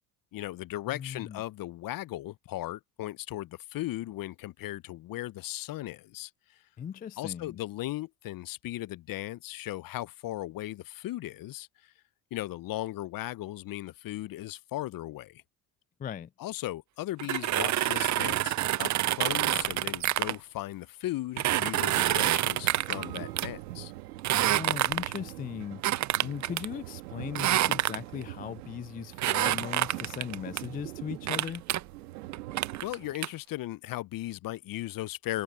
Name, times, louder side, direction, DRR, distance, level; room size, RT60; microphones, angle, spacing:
voice 1, 0.3-6.3 7.2-11.9 12.3-15.4 16.4-23.9 32.8-35.4, left 16 dB, 50° left, 0.7 m, -37 dB
voice 2, 0.9-1.4 6.8-7.6 16.0-16.3 24.3-31.6, left 8 dB, 20° left, 0.4 m, -38 dB
sound 1, 17.2-20.4 21.4-23.5 24.2-25.3 25.8-26.7 27.4-28.2 29.2-30.6 31.3-31.8 32.3-33.3, right 14 dB, 40° right, 0.6 m, -27 dB
sound 2, 22.6-33.1, right 17 dB, 85° right, 1.8 m, -43 dB
Acoustic guitar, 22.9-27.1, right 11 dB, 55° right, 5.1 m, -53 dB
hypercardioid pair, 65°, 46 cm